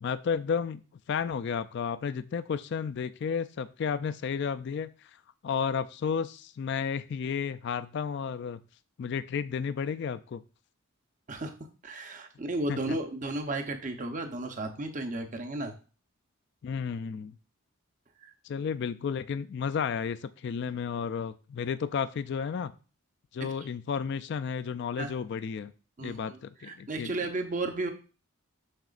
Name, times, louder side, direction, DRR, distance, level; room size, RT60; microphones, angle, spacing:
voice 1, 0.0-0.8 1.1-4.9 5.4-8.6 9.0-10.4 12.7-13.0 16.6-17.4 18.4-22.7 23.3-25.7 26.0-27.1, left 6 dB, 50° left, 13 dB, 0.3 m, -32 dB
voice 2, 11.8-15.7 18.2-18.3 23.4-23.7 25.0-25.1 26.0-27.9, right 2 dB, 35° right, 6 dB, 0.7 m, -34 dB
7.7 x 5.9 x 2.4 m, 0.35 s
head